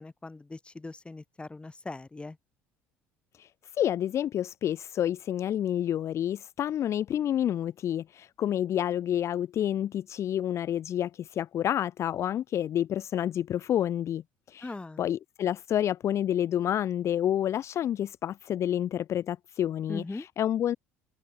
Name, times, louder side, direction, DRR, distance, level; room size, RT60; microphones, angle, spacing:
voice 1, 0.0-2.4 14.6-15.0 19.9-20.3, left 3 dB, 15° left, 1.0 m, -40 dB
voice 2, 3.8-14.2 14.5-14.7 15.0-20.8, left 10 dB, 45° left, 0.4 m, -29 dB
hypercardioid pair, 65°, 7 cm